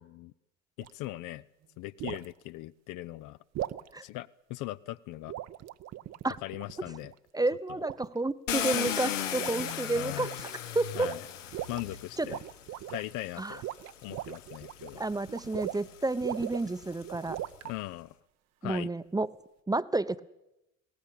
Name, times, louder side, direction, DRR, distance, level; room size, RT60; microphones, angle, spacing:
voice 1, 0.8-1.4 1.8-3.4 4.0-5.3 6.4-7.1 9.9-10.3 11.0-11.2 11.7-12.4 12.9-13.6 14.0-15.0 17.6-18.1 18.6-18.9, left 17 dB, 55° left, 15 dB, 0.7 m, -39 dB
sound 1, 0.8-1.0 2.0-2.3 3.5-3.9 5.3-7.1 7.8-8.3 8.6-9.0 9.4-9.8 10.1-10.6 10.9-11.8 12.2-13.1 13.5-15.9 16.2-17.7, right 13 dB, 45° right, 0.8 m, -39 dB
voice 2, 7.3-10.5 10.7-11.1 12.2-12.3 13.4-13.6 15.0-17.4 18.6-19.3 19.7-20.2, right 2 dB, 10° right, 15 dB, 0.8 m, -30 dB
Car, 8.5-12.6 13.5-13.6 14.2-17.4, left 10 dB, 75° left, 1.2 m, -36 dB
20.0 x 17.5 x 8.7 m, 0.92 s
figure-of-eight pair, 55°, 37 cm